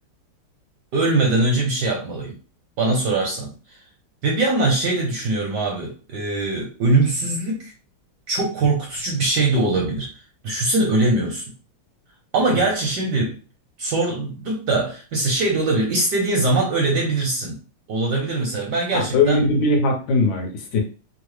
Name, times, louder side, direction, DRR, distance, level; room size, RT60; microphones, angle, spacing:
voice 1, 0.9-2.3 2.8-3.5 4.2-7.7 8.3-10.1 10.4-11.4 12.3-13.3 13.8-17.6 17.9-19.4, right 2 dB, 70° right, 0 dB, 1.0 m, -22 dB
voice 2, 18.9-20.8, left 2 dB, 70° left, 1 dB, 1.5 m, -20 dB
3.7 x 2.0 x 3.1 m, 0.36 s
omnidirectional pair, 2.3 m